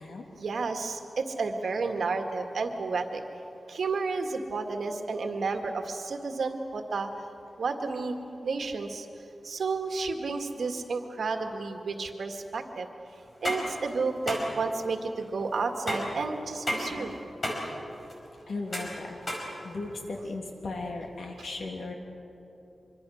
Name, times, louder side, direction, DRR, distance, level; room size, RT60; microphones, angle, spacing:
voice 1, 0.3-3.2 3.7-7.1 7.6-8.2 8.4-9.1 9.4-12.9 13.4-17.2 21.4-21.5, right 4 dB, 75° right, 5 dB, 2.0 m, -31 dB
sound 1, 13.2-20.2, equal, 30° left, 4.8 m, -34 dB
voice 2, 18.5-21.9, left 3 dB, 75° left, 1 dB, 3.1 m, -37 dB
25.0 x 24.5 x 6.5 m, 2.9 s
wide cardioid pair, 140°, 0 cm